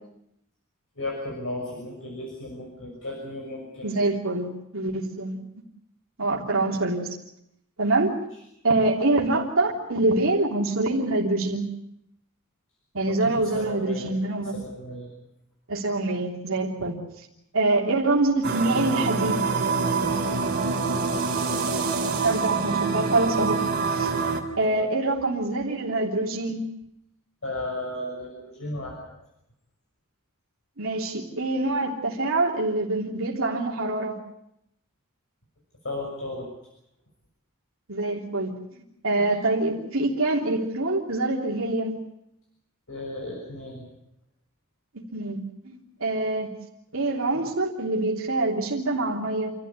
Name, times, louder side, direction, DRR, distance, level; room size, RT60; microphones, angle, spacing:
voice 1, 1.0-4.2 13.1-14.1 14.5-15.1 20.0-20.4 24.6-24.9 27.4-28.9 35.8-36.5 42.9-43.9, left 1 dB, 65° left, -1 dB, 6.5 m, -35 dB
voice 2, 3.8-5.4 6.2-7.2 7.8-8.1 8.6-11.6 12.9-14.5 15.7-17.0 17.5-19.4 22.2-23.6 23.9-24.1 24.6-26.7 30.8-34.1 37.9-42.0 44.9-46.5 46.9-49.5, right 2 dB, 70° right, -1 dB, 3.3 m, -25 dB
sound 1, 18.4-24.4, right 4 dB, 50° right, 3.6 m, -26 dB
28.5 x 14.0 x 9.7 m, 0.81 s
head